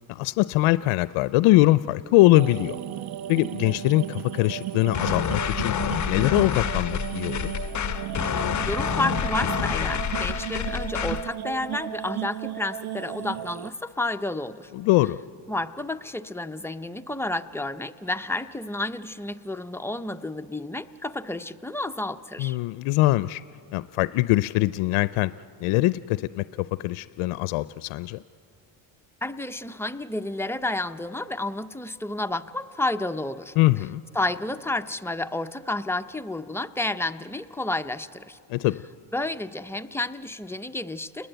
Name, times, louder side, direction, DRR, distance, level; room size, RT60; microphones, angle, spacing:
voice 1, 0.1-2.8 3.3-5.7 6.1-7.5 14.7-15.2 22.4-23.4 23.7-25.3 25.6-28.2 33.6-34.0 38.5-38.7, left 18 dB, 80° left, 16 dB, 0.5 m, -22 dB
sound 1, 2.3-13.7, right 13 dB, 50° right, 0.5 m, -34 dB
sound 2, 4.9-11.3, left 9 dB, 35° left, 0.8 m, -28 dB
voice 2, 8.7-14.7 15.5-22.6 29.2-33.5 34.1-38.4 39.1-41.3, left 2 dB, 5° left, 8 dB, 0.5 m, -31 dB
29.0 x 20.5 x 7.9 m, 2.6 s
cardioid pair, 100°, 50 cm